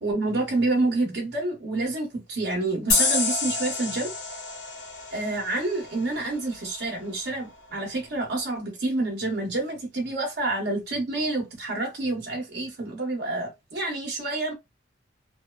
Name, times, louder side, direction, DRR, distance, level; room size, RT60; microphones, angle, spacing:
voice 1, 0.0-4.1 5.1-14.5, right 2 dB, 65° right, 0.7 m, -28 dB
sound 1, 2.9-6.2, left 4 dB, 85° left, 1.1 m, -28 dB
2.7 x 2.2 x 2.2 m
head